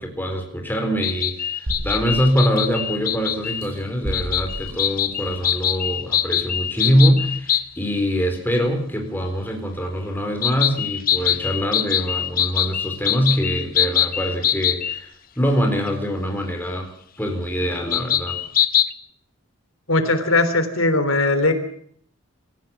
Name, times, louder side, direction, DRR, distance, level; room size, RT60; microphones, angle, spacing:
voice 1, 0.0-16.9 17.2-18.4, equal, 10° left, 3 dB, 4.0 m, -23 dB
sound 1, 1.0-3.6 4.1-7.6 10.4-15.0 15.9-16.0 17.9-18.9, left 10 dB, 40° left, 1.0 m, -23 dB
sound 2, 1.7-3.0 3.5-5.6 6.2-6.3, equal, 85° right, 5.3 m, -33 dB
voice 2, 19.9-21.5, left 2 dB, 70° left, 9 dB, 3.5 m, -19 dB
26.5 x 15.5 x 7.3 m, 0.64 s
head